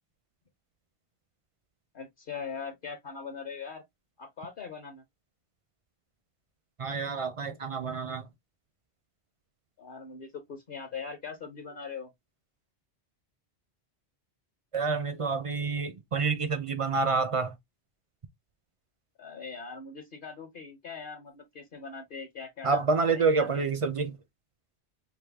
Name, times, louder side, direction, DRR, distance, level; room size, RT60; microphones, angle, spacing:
voice 1, 1.9-3.8 4.2-5.0 9.8-12.1 19.2-23.7, left 5 dB, 55° left, 0.9 m, -41 dB
voice 2, 6.8-8.2 14.7-17.5 22.6-24.2, right 4 dB, 50° right, 0.4 m, -28 dB
4.9 x 2.1 x 3.4 m
omnidirectional pair, 1.2 m